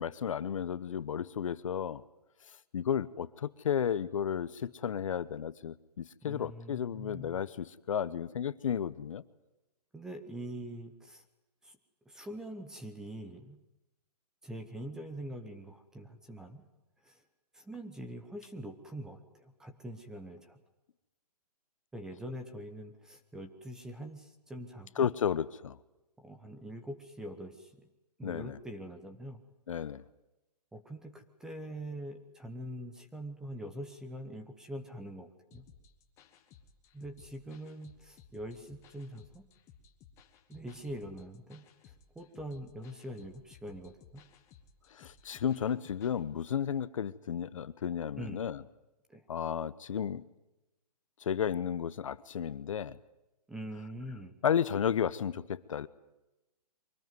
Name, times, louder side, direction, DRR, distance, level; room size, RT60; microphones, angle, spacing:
voice 1, 0.0-2.0 2.7-9.2 25.0-25.8 28.2-28.6 29.7-30.0 44.9-48.6 49.3-50.3 51.2-53.0 54.4-55.9, left 8 dB, 55° left, 16 dB, 0.9 m, -33 dB
voice 2, 6.2-7.4 9.9-11.2 11.6-11.8 12.1-13.6 14.4-16.6 17.0-17.2 17.5-20.6 21.9-25.1 26.2-27.9 28.2-29.4 30.7-35.6 36.9-39.5 40.5-44.2 48.2-48.4 49.1-49.2 53.5-54.3, right 1 dB, 5° right, 7 dB, 0.9 m, -44 dB
sound 1, 35.5-46.2, left 7 dB, 15° left, 1.4 m, -59 dB
24.5 x 18.5 x 9.5 m, 0.98 s
hypercardioid pair, 170°, 20 cm